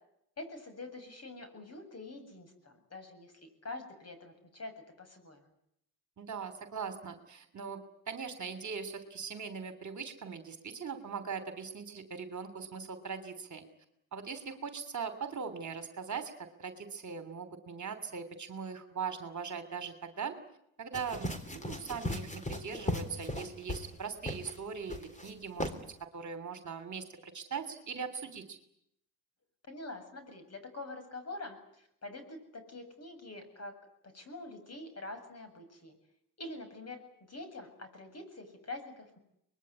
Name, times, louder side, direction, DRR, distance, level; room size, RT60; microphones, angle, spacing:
voice 1, 0.4-3.3 3.6-5.4 29.7-33.7 34.1-36.0 36.4-39.2, left 2 dB, 30° left, 8 dB, 7.8 m, -45 dB
voice 2, 6.2-13.6 14.1-20.4 20.8-25.7 26.0-28.6, right 6 dB, 35° right, 10 dB, 3.2 m, -40 dB
sound 1, 20.9-24.0 24.2-24.6 24.9-25.3 25.6-25.7, left 1 dB, 15° left, 3.7 m, -37 dB
24.5 x 21.0 x 9.8 m, 0.76 s
supercardioid pair, 85°, 47 cm